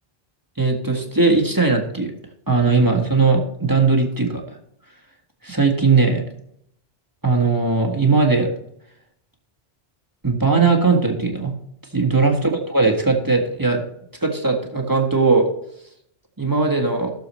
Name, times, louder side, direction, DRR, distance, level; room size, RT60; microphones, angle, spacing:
voice 1, 0.6-2.1 2.5-4.4 5.4-6.2 7.2-8.5 10.2-11.5 11.9-13.8 14.2-15.5 16.4-17.1, right 4 dB, 20° right, 1 dB, 1.6 m, -18 dB
16.5 x 6.9 x 3.1 m, 0.72 s
omnidirectional pair, 1.0 m